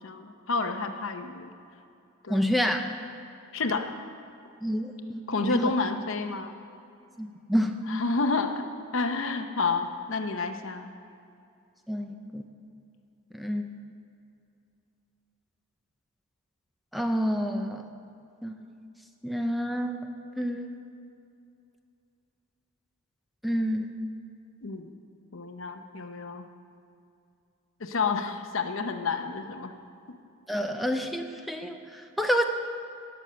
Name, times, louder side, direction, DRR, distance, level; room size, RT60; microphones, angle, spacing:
voice 1, 0.0-1.5 2.2-2.5 3.5-4.0 5.3-6.6 7.9-8.7 8.9-10.9 24.6-24.9 25.3-26.5 27.8-29.7, left 4 dB, 60° left, 7 dB, 0.8 m, -30 dB
voice 2, 2.3-2.8 4.6-5.7 7.2-7.8 11.9-12.4 13.3-13.7 16.9-17.8 18.4-18.5 19.2-20.0 20.4-20.7 23.4-23.9 30.5-32.4, equal, ahead, 4 dB, 0.5 m, -28 dB
18.5 x 6.5 x 6.8 m, 2.6 s
head